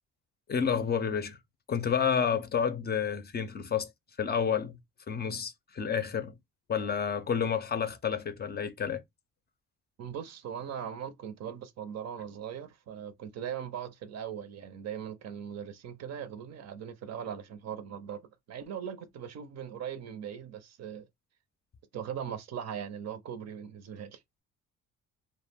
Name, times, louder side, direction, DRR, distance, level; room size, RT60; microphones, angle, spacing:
voice 1, 0.5-1.4 1.7-3.9 4.2-4.8 5.1-6.3 6.7-9.0, left 7 dB, 35° left, 0.5 m, -30 dB
voice 2, 10.0-18.2 18.5-21.1 21.9-24.2, right 8 dB, 60° right, 0.5 m, -39 dB
2.2 x 2.1 x 3.4 m
cardioid pair, 90°, 30 cm